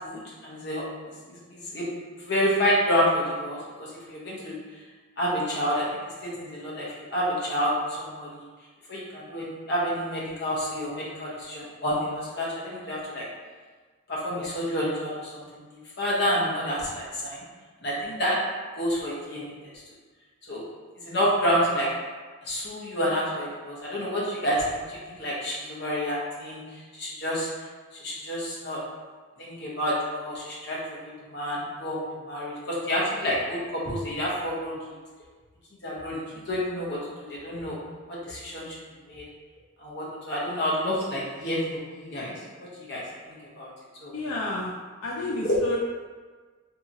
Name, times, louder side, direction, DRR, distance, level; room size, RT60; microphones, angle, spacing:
voice 1, 0.0-1.9 2.2-3.6 4.1-4.6 5.2-5.8 6.2-8.5 8.9-12.1 12.3-13.3 14.1-15.4 16.0-17.4 17.8-18.4 18.8-19.5 20.5-20.6 21.0-21.9 22.4-26.6 26.9-27.5 28.0-28.8 29.4-30.8 31.0-32.0 32.2-34.7 35.8-37.0 37.3-37.8 38.2-38.8 39.1-39.2 39.8-43.7 44.0-44.1 45.4-45.6, equal, 50° left, -6 dB, 0.8 m, -29 dB
voice 2, 44.1-44.7 45.0-45.8, left 2 dB, 80° left, -4 dB, 0.4 m, -30 dB
2.8 x 2.7 x 2.5 m, 1.4 s
head